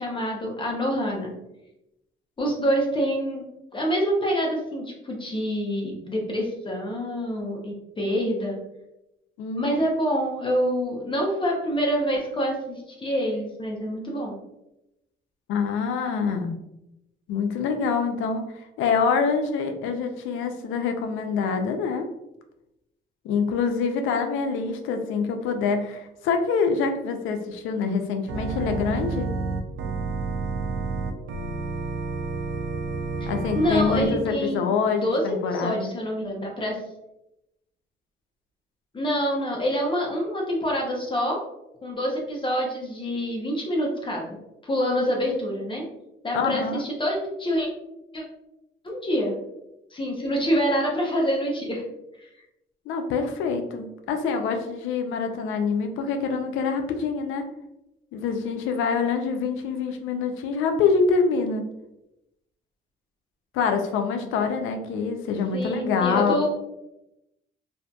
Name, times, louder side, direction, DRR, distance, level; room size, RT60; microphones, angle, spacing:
voice 1, 0.0-1.3 2.4-3.4 3.7-8.6 9.6-14.4 33.5-36.8 38.9-41.4 41.8-44.4 44.6-45.8 46.2-47.7 48.1-48.2 48.8-49.4 49.9-51.8 52.2-52.3 65.5-66.5, equal, 25° left, -1 dB, 0.7 m, -26 dB
voice 2, 9.4-9.8 15.5-16.6 17.3-18.5 18.8-22.1 23.2-29.3 33.3-35.9 46.3-46.8 52.9-57.4 58.1-61.7 63.5-66.4, left 5 dB, 90° left, 6 dB, 0.4 m, -25 dB
Organ, 28.3-34.1, right 3 dB, 75° right, 0.4 m, -30 dB
2.7 x 2.5 x 2.2 m, 0.88 s
cardioid pair, 90°, 20 cm